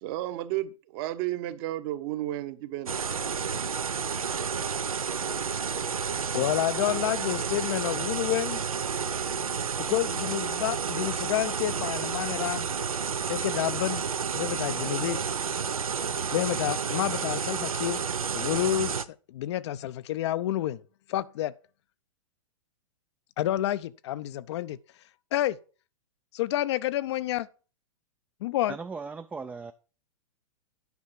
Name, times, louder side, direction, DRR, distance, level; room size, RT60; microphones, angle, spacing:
voice 1, 0.0-3.1, right 15 dB, 45° right, 1.0 m, -33 dB
sound 1, 2.9-19.0, right 6 dB, 85° right, 0.6 m, -31 dB
voice 2, 6.3-8.6 9.9-12.7 13.3-14.1 14.3-15.2 16.3-18.0 18.3-20.8 21.1-21.5 23.4-24.8 25.3-25.6 26.3-27.5 28.4-28.8, left 13 dB, 55° left, 0.6 m, -29 dB
voice 3, 28.6-29.7, right 4 dB, 10° right, 0.4 m, -38 dB
9.6 x 5.7 x 5.7 m
hypercardioid pair, 110°, 18 cm